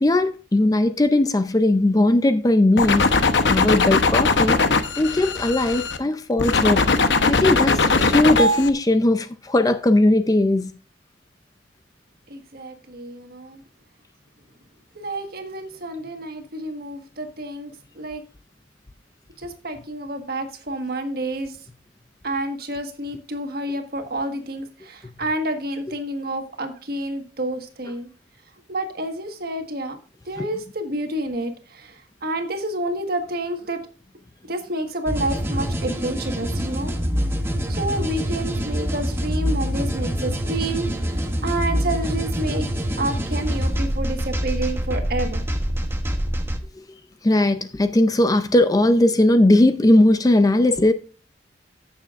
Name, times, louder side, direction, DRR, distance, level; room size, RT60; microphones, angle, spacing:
voice 1, 0.0-6.9 7.3-10.7 30.4-30.5 47.2-50.9, left 1 dB, 20° left, 0.4 m, -19 dB
sound 1, 2.8-6.0 6.4-8.7, left 3 dB, 65° left, 0.9 m, -19 dB
voice 2, 12.3-13.6 14.9-18.2 19.4-21.6 22.2-28.1 28.7-30.0 30.2-33.8 34.5-36.9 37.7-42.7 43.0-45.4, right 1 dB, 55° right, 1.5 m, -29 dB
sound 2, 35.1-46.6, equal, 15° right, 0.9 m, -25 dB
15.0 x 6.9 x 2.5 m
head